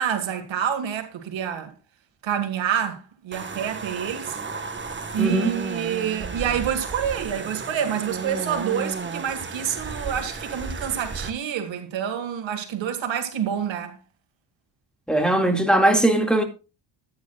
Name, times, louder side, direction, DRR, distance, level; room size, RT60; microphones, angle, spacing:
voice 1, 0.0-1.7 2.2-4.4 5.1-14.0, right 8 dB, 80° right, 1.9 m, -27 dB
sound 1, 3.3-11.3, right 4 dB, 25° right, 1.4 m, -33 dB
voice 2, 5.2-5.5 15.1-16.4, right 1 dB, ahead, 2.1 m, -19 dB
14.0 x 9.6 x 2.4 m
cardioid pair, 95°, 45 cm